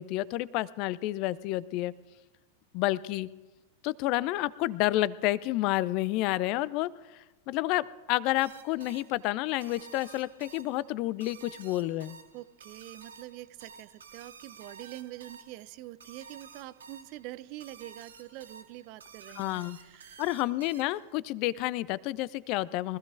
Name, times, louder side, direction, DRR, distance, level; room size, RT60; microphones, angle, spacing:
voice 1, 0.0-1.9 2.7-3.3 3.8-6.9 7.5-12.1 19.4-19.8 20.2-23.0, left 17 dB, 40° left, 20 dB, 0.5 m, -30 dB
sound 1, 8.4-21.2, right 6 dB, 70° right, 1.9 m, -52 dB
voice 2, 12.3-20.2, right 16 dB, 45° right, 17 dB, 0.5 m, -45 dB
24.0 x 15.5 x 2.6 m, 1.1 s
figure-of-eight pair, 90°, 0 cm